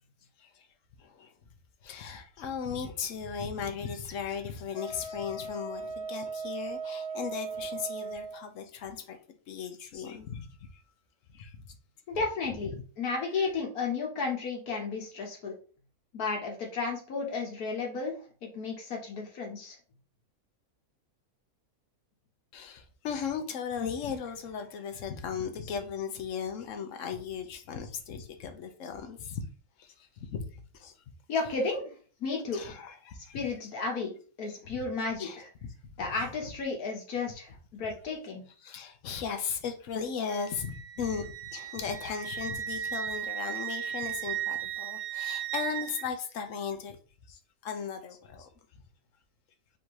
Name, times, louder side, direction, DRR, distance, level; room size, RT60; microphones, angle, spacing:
voice 1, 1.0-1.3 1.8-9.2 9.5-10.8 11.3-11.8 12.7-12.8 13.4-13.5 22.5-29.4 29.8-30.9 32.5-33.5 35.2-36.1 38.6-47.0 47.3-48.5, left 6 dB, 65° left, 6 dB, 1.0 m, -37 dB
Wind instrument woodwind instrument, 4.7-8.4, right 4 dB, 10° right, 0.4 m, -38 dB
voice 2, 12.1-15.5 16.1-19.8 31.3-31.9 32.2-32.6 33.2-35.5 36.0-38.4, left 4 dB, 85° left, 0 dB, 1.7 m, -33 dB
Wind instrument woodwind instrument 2, 40.3-46.1, right 10 dB, 85° right, 1.1 m, -36 dB
3.6 x 2.7 x 4.6 m, 0.40 s
omnidirectional pair, 1.5 m